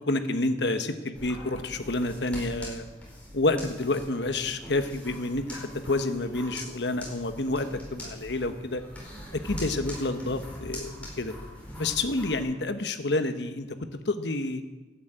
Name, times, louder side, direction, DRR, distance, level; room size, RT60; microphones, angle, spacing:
voice 1, 0.1-2.9 3.3-8.8 9.3-11.3 11.8-14.6, left 2 dB, 70° left, 8 dB, 1.3 m, -29 dB
sound 1, 1.1-12.4, equal, 10° left, 4.9 m, -42 dB
12.5 x 9.6 x 8.8 m, 1.2 s
head